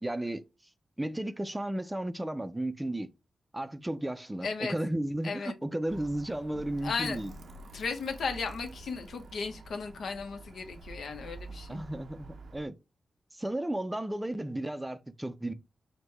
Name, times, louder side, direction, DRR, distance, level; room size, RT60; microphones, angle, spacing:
voice 1, 0.0-0.4 1.0-3.1 3.5-7.3 11.7-12.7 13.3-15.5, right 1 dB, 10° right, 0.4 m, -34 dB
voice 2, 4.4-4.7 5.2-5.5 6.8-7.2 7.7-11.8, left 5 dB, 85° left, 0.8 m, -35 dB
Alarm, 5.9-12.7, right 2 dB, 70° right, 0.5 m, -48 dB
6.1 x 2.1 x 3.3 m
wide cardioid pair, 95°, 0 cm